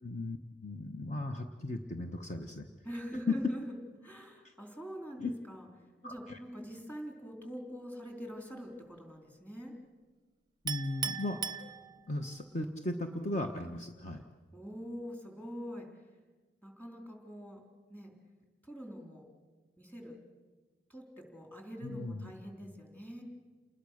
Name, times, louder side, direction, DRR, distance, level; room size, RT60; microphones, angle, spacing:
voice 1, 0.0-0.4 0.6-2.7 3.3-3.4 4.4-4.5 5.2-5.3 6.0-6.4 10.6-11.7 12.1-14.2 21.8-22.3, left 2 dB, 40° left, 4 dB, 1.1 m, -37 dB
voice 2, 2.8-3.7 4.0-5.7 6.0-9.7 12.6-12.7 14.5-15.9 16.6-17.6 17.9-18.1 18.6-19.2 19.8-20.2 20.9-23.2, equal, 10° left, 1 dB, 3.9 m, -44 dB
Chink clink, 10.7-12.3, right 7 dB, 20° right, 0.7 m, -38 dB
28.5 x 20.5 x 6.5 m, 1.4 s
head